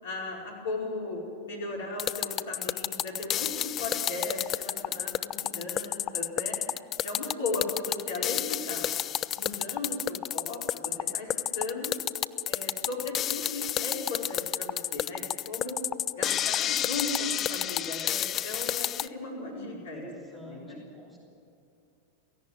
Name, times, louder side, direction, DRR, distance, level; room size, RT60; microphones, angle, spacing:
voice 1, 0.0-6.6 7.0-8.9 9.3-11.3 11.5-11.9 12.5-15.8 16.1-20.8, left 2 dB, 60° left, -1 dB, 4.9 m, -36 dB
sound 1, 2.0-19.1, left 11 dB, 30° left, 0.4 m, -30 dB
voice 2, 19.4-21.2, right 1 dB, 10° right, -1 dB, 2.9 m, -47 dB
17.5 x 16.0 x 9.6 m, 2.6 s
figure-of-eight pair, 90°, 0 cm